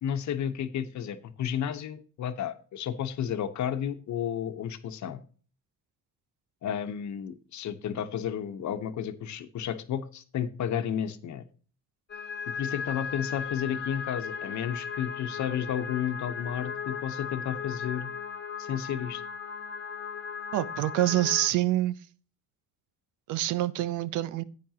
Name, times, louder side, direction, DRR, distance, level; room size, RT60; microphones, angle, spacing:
voice 1, 0.0-5.2 6.6-11.4 12.6-18.1 18.6-19.2, left 9 dB, 70° left, 1.0 m, -32 dB
sound 1, 12.1-21.5, left 6 dB, 35° left, 1.3 m, -37 dB
voice 2, 20.5-22.0 23.3-24.4, right 14 dB, 90° right, 0.6 m, -26 dB
10.5 x 8.6 x 2.9 m
cardioid pair, 90°, 30 cm